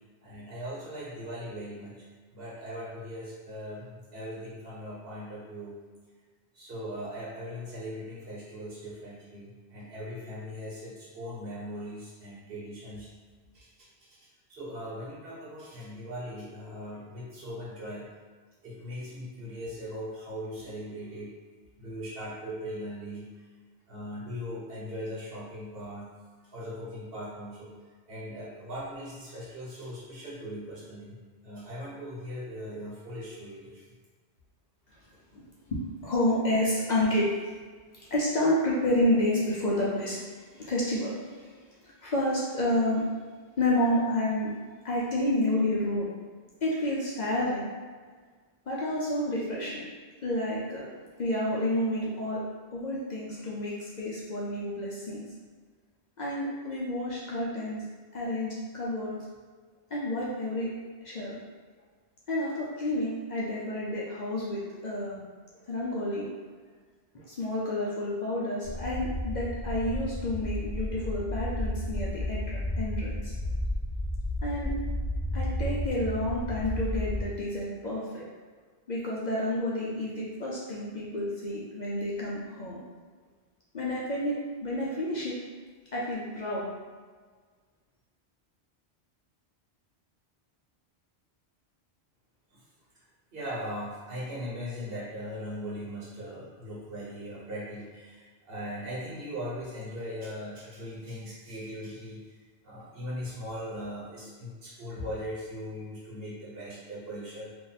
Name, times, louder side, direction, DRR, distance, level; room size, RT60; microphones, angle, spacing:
voice 1, 0.2-1.9 2.3-5.7 6.5-13.1 13.5-13.9 14.5-18.1 18.6-21.3 21.8-23.3 23.9-26.1 26.4-27.7 28.1-31.2 31.4-33.8 92.5-92.6 93.3-102.2 102.6-107.5, equal, 60° right, -7 dB, 1.2 m, -39 dB
voice 2, 36.0-37.3 37.9-40.2 40.5-41.6 42.0-43.0 43.6-44.5 44.8-46.1 46.6-47.7 48.7-49.9 50.2-50.9 51.2-52.4 52.7-55.2 56.2-57.8 58.1-59.2 59.9-60.7 61.0-61.4 62.3-65.2 65.7-66.3 67.1-73.3 74.4-74.7 75.3-78.2 78.9-82.8 83.7-84.3 84.6-85.4 85.9-86.7, left 1 dB, 50° left, -6 dB, 0.7 m, -29 dB
sound 1, 68.6-77.2, left 1 dB, 25° right, 1.2 m, -32 dB
2.8 x 2.6 x 4.0 m, 1.5 s
omnidirectional pair, 1.1 m